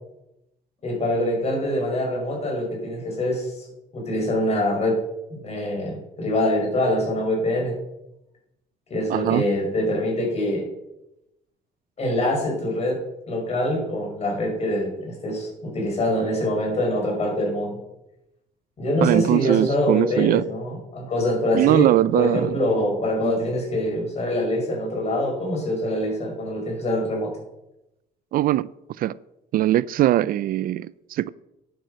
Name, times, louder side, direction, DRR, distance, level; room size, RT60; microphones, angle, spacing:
voice 1, 0.8-3.7 3.9-5.0 5.3-7.8 8.9-10.7 12.0-13.0 13.3-17.8 18.8-27.3, left 1 dB, 40° left, 5.7 m, -24 dB
voice 2, 9.1-9.4 19.0-20.4 21.5-22.5 28.3-28.7 29.0-29.1 29.5-31.3, right 13 dB, 60° right, 0.4 m, -21 dB
10.0 x 8.8 x 6.5 m
cardioid pair, 110°, 17 cm